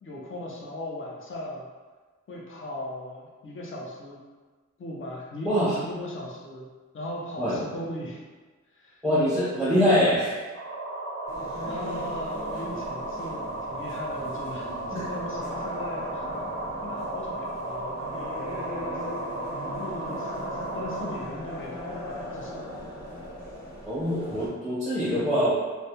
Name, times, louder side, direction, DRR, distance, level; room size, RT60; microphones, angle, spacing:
voice 1, 0.0-1.6 2.3-4.2 4.8-8.2 8.7-9.0 11.6-16.3 16.8-18.8 19.8-22.7, left 1 dB, 45° left, -3 dB, 0.5 m, -38 dB
voice 2, 5.4-5.8 7.4-7.6 9.0-10.3 14.9-15.0 23.9-25.5, equal, ahead, -11 dB, 0.6 m, -24 dB
sound 1, 10.5-21.2, right 2 dB, 55° right, 0.5 m, -35 dB
sound 2, 11.3-24.5, left 1 dB, 60° left, 0.9 m, -39 dB
2.3 x 2.1 x 2.8 m, 1.4 s
wide cardioid pair, 145°, 29 cm